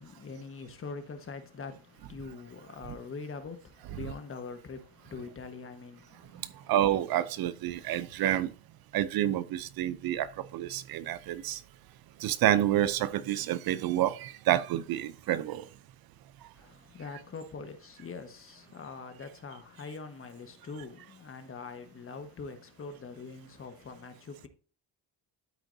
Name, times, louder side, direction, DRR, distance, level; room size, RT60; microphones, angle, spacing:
voice 1, 0.0-6.7 16.5-24.5, left 4 dB, 30° left, 1.3 m, -43 dB
voice 2, 6.7-8.5 8.9-11.6 12.2-15.7, right 12 dB, 60° right, 0.6 m, -28 dB
12.5 x 4.4 x 2.7 m
cardioid pair, 115°, 40 cm